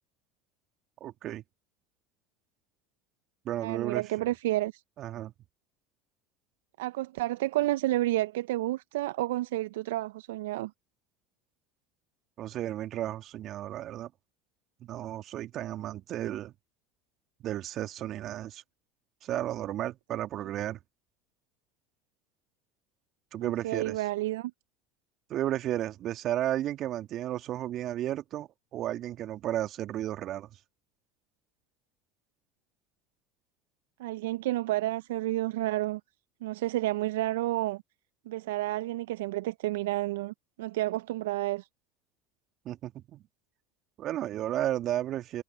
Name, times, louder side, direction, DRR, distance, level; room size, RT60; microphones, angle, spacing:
voice 1, 1.0-1.4 3.4-4.0 5.0-5.3 12.4-14.1 14.8-16.5 17.4-18.6 19.2-20.8 23.3-24.0 25.3-30.5 42.6-43.2 44.0-45.4, right 12 dB, 50° right, 2.5 m, -33 dB
voice 2, 3.6-4.8 6.8-10.7 23.4-24.5 34.0-36.0 36.4-37.8 38.3-41.7, right 16 dB, 70° right, 0.9 m, -30 dB
hypercardioid pair, 75°, 0 cm